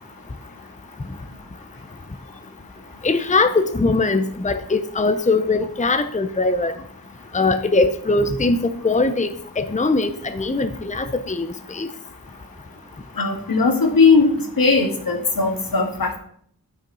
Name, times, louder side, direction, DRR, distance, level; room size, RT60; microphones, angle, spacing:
voice 1, 3.0-6.7 7.3-9.3 9.6-11.9, left 3 dB, 20° left, 9 dB, 0.8 m, -21 dB
voice 2, 13.2-14.3 14.6-16.2, left 4 dB, 75° left, 3 dB, 1.9 m, -18 dB
8.9 x 5.8 x 5.5 m, 0.63 s
cardioid pair, 45°, 35 cm